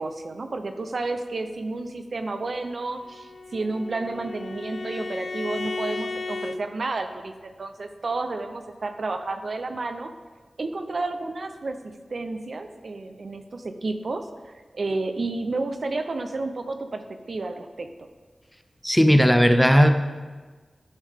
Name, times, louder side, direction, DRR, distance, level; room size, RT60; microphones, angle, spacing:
voice 1, 0.0-10.1 10.6-11.8 12.1-14.3 14.7-17.9, right 3 dB, 70° right, 6 dB, 0.6 m, -31 dB
Bowed string instrument, 3.1-6.6, left 3 dB, 75° left, 0.4 m, -34 dB
voice 2, 18.8-19.9, equal, 5° left, 7 dB, 0.7 m, -16 dB
11.5 x 5.4 x 3.6 m, 1.4 s
cardioid pair, 45°, 0 cm